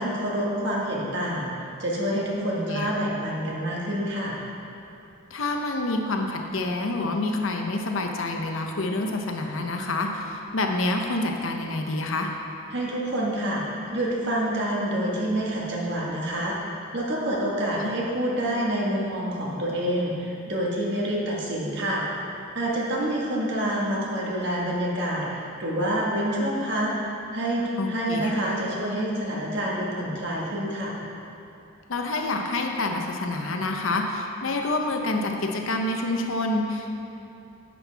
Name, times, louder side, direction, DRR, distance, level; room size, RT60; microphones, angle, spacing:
voice 1, 0.0-4.4 12.7-13.6 13.9-22.0 22.6-31.0, right 1 dB, 55° right, -4 dB, 1.6 m, -27 dB
voice 2, 2.4-2.9 5.3-12.3 17.8-17.9 27.8-28.3 31.9-36.9, left 2 dB, 70° left, 2 dB, 0.8 m, -27 dB
10.0 x 7.7 x 3.5 m, 2.8 s
head